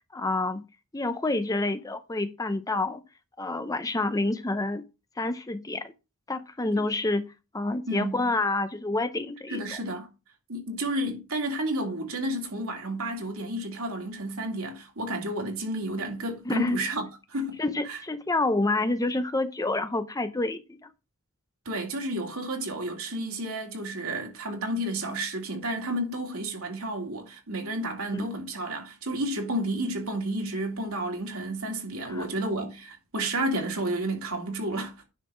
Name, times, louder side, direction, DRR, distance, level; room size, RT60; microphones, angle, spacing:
voice 1, 0.1-0.6 0.9-3.0 3.4-4.8 5.2-5.9 6.3-7.3 7.5-9.6 16.4-16.8 17.6-20.9 28.1-28.3 32.0-32.3, left 2 dB, 15° left, 0.7 m, -28 dB
voice 2, 9.5-10.1 10.5-17.6 17.9-18.0 21.6-34.9, right 1 dB, 70° right, 2.7 m, -31 dB
10.0 x 4.1 x 6.3 m
head